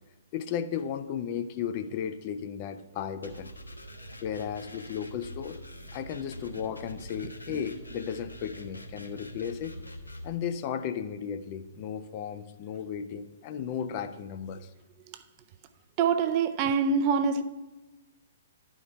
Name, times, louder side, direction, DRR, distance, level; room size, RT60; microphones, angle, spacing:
voice 1, 0.3-3.5 4.2-5.6 5.9-9.8 10.2-14.7, left 8 dB, 35° left, 0.5 m, -35 dB
sound 1, 3.2-10.3, equal, 80° left, 1.0 m, -45 dB
voice 2, 16.0-17.4, right 5 dB, 30° right, 0.5 m, -25 dB
11.0 x 4.6 x 5.6 m
figure-of-eight pair, 120°, 0 cm